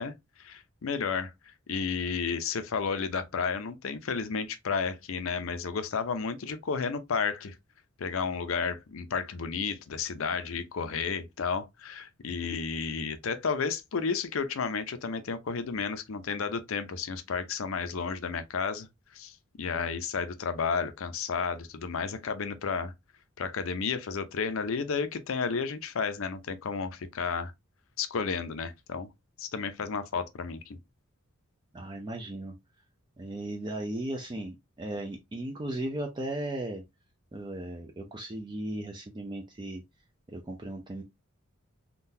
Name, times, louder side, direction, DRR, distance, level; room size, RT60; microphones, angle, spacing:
voice 1, 0.0-7.5 8.0-18.9 19.1-22.9 23.4-27.5 28.0-29.1 29.4-30.8, left 5 dB, 70° left, 0.5 m, -32 dB
voice 2, 31.7-32.6 33.2-36.8 37.3-39.8 40.3-41.0, right 1 dB, 20° right, 0.4 m, -36 dB
3.7 x 2.3 x 2.6 m
head